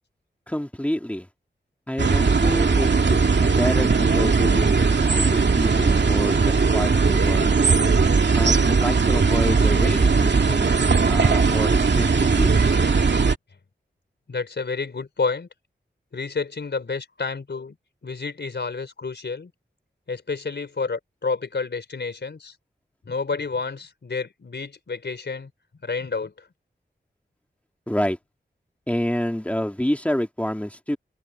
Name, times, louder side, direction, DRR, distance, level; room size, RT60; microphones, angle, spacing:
voice 1, 0.5-1.3 1.9-5.2 5.5-7.5 8.4-10.8 11.0-12.5 27.9-28.2 28.9-31.0, equal, 5° left, 3.1 m, -28 dB
sound 1, 2.0-13.4, right 4 dB, 75° right, 2.4 m, -19 dB
voice 2, 14.3-15.5 16.1-17.8 18.0-19.5 20.1-22.6 23.1-25.5 25.8-26.5, left 4 dB, 70° left, 4.2 m, -30 dB
open air
wide cardioid pair, 85°, 18 cm